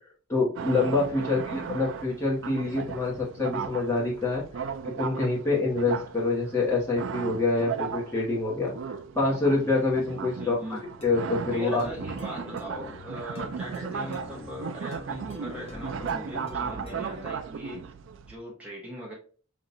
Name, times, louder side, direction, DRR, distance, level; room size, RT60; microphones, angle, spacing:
voice 1, 0.3-4.4 4.8-10.6 11.0-11.8, left 3 dB, 10° left, -5 dB, 1.5 m, -26 dB
sound 1, 0.6-18.3, right 6 dB, 55° right, 0.3 m, -36 dB
voice 2, 1.2-1.7 10.4-10.8 11.5-17.8 18.3-19.1, equal, 5° right, -5 dB, 1.1 m, -40 dB
sound 2, 11.0-17.5, left 1 dB, 25° left, 1.0 m, -44 dB
5.3 x 2.9 x 2.7 m, 0.39 s
head